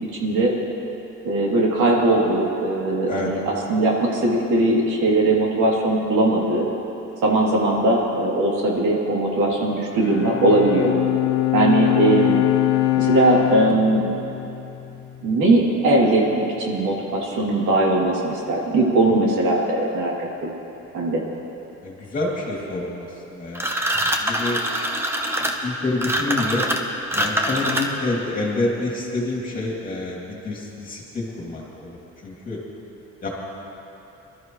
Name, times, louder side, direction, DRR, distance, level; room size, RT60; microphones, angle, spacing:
voice 1, 0.0-0.5 1.2-6.6 7.2-10.9 11.5-12.4 13.0-14.0 15.2-20.5 20.9-21.2, right 2 dB, 80° right, -3 dB, 2.8 m, -20 dB
Bowed string instrument, 9.9-15.4, left 17 dB, 55° left, 0.5 m, -23 dB
voice 2, 21.8-23.7 24.0-24.6 25.6-26.7 27.1-32.6 33.2-33.3, left 2 dB, 30° left, -3 dB, 2.5 m, -27 dB
sound 1, 23.5-28.1, right 1 dB, 10° right, 0.9 m, -24 dB
24.0 x 13.0 x 3.1 m, 2.9 s
cardioid pair, 165°, 29 cm